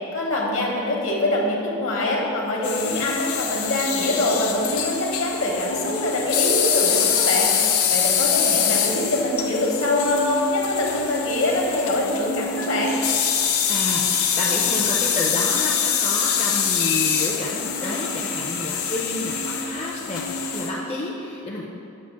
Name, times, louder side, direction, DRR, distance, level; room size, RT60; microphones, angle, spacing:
voice 1, 0.1-7.5 7.9-13.0, left 2 dB, 65° left, -1 dB, 0.9 m, -24 dB
sound 1, 2.6-20.7, left 7 dB, 80° left, 0.5 m, -24 dB
voice 2, 13.7-21.6, left 2 dB, 30° left, -4 dB, 0.4 m, -30 dB
7.3 x 2.4 x 5.7 m, 2.7 s
head